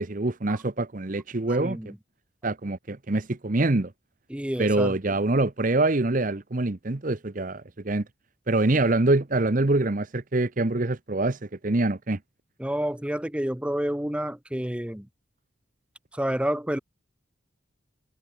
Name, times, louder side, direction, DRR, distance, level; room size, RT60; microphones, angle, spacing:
voice 1, 0.0-1.8 2.4-3.9 4.6-8.0 8.5-12.2, right 2 dB, 40° right, 0.9 m, -25 dB
voice 2, 1.5-2.0 4.3-5.0 12.6-15.1 16.1-16.8, equal, 5° right, 0.7 m, -29 dB
head